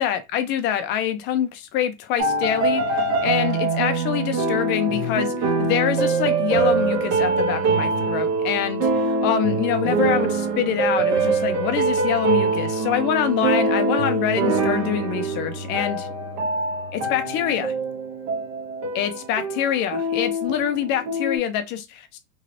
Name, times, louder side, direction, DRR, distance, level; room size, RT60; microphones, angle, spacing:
voice 1, 0.0-16.1 16.9-17.7 18.9-22.2, left 10 dB, 30° left, 0.4 m, -25 dB
sound 1, 2.2-21.4, right 3 dB, 40° right, 0.9 m, -24 dB
3.1 x 2.8 x 2.5 m
supercardioid pair, 135°, 41 cm